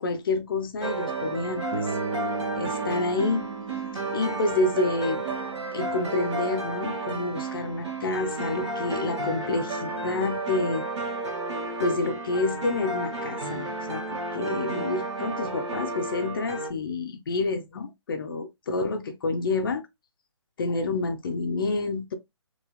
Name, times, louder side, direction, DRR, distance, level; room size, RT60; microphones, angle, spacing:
voice 1, 0.0-1.9 2.6-3.5 4.1-5.2 5.7-10.9 11.8-19.8 20.6-22.1, left 3 dB, 45° left, 0.6 m, -28 dB
sound 1, 0.8-16.7, right 2 dB, 60° right, 1.3 m, -32 dB
Bass guitar, 1.7-5.8, right 3 dB, 20° right, 0.6 m, -36 dB
2.9 x 2.8 x 2.2 m
figure-of-eight pair, 145°, 16 cm